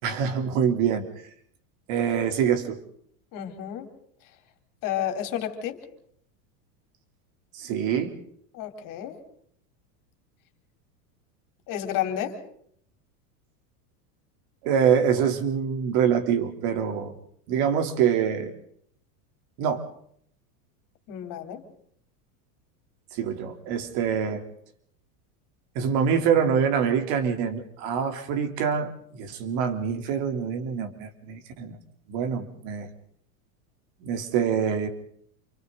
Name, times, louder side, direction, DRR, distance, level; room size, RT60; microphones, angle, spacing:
voice 1, 0.0-1.0 1.9-2.8 7.5-8.1 14.6-17.1 17.5-18.5 19.6-19.8 23.1-24.4 25.7-31.8 32.1-32.9 34.0-34.9, right 7 dB, 55° right, 6 dB, 3.4 m, -25 dB
voice 2, 3.3-3.9 4.8-5.8 8.5-9.2 11.7-12.4 21.1-21.6, left 10 dB, 45° left, 6 dB, 3.7 m, -31 dB
28.5 x 24.0 x 3.9 m, 0.64 s
supercardioid pair, 130°, 45 cm